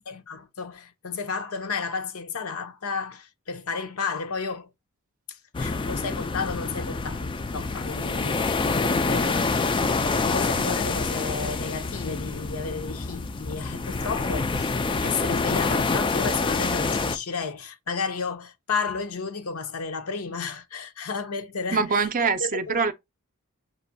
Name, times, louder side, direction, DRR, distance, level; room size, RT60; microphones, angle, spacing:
voice 1, 0.1-4.7 5.3-14.7 15.0-22.8, left 5 dB, 75° left, 0.8 m, -33 dB
sound 1, 5.5-17.2, left 3 dB, 20° left, 0.3 m, -26 dB
voice 2, 21.7-22.9, right 4 dB, 35° right, 0.6 m, -24 dB
6.5 x 3.0 x 2.7 m
head